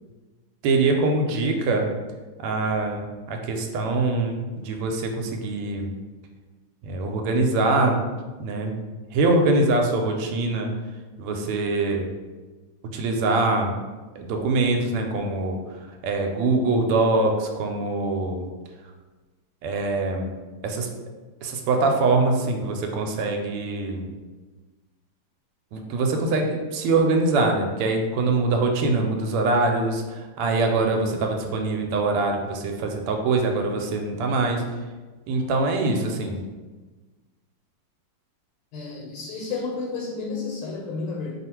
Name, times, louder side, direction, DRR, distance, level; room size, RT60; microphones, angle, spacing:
voice 1, 0.6-1.9 2.4-5.9 6.8-8.0 8.4-8.8 9.1-10.7 11.2-12.1 12.9-13.8 14.2-18.5 19.6-20.3 20.6-20.9 21.4-24.1 25.7-34.6 35.3-36.4, right 3 dB, 85° right, 3 dB, 1.5 m, -23 dB
voice 2, 38.7-41.3, left 4 dB, 85° left, -1 dB, 1.5 m, -31 dB
3.3 x 2.4 x 4.3 m, 1.3 s
omnidirectional pair, 2.4 m